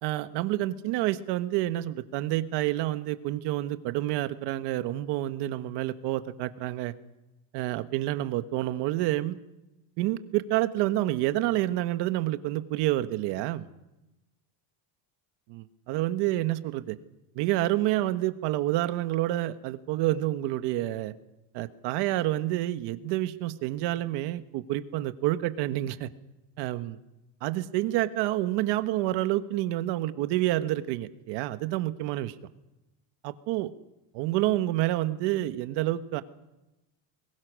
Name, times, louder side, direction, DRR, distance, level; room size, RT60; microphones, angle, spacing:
voice 1, 0.0-6.9 7.5-9.4 10.0-13.7 15.5-17.0 17.3-21.1 21.5-26.1 26.6-27.0 27.4-32.3 33.2-33.7 34.1-36.2, right 15 dB, 60° right, 11 dB, 1.4 m, -28 dB
24.0 x 22.0 x 6.3 m, 0.97 s
cardioid pair, 170°, 46 cm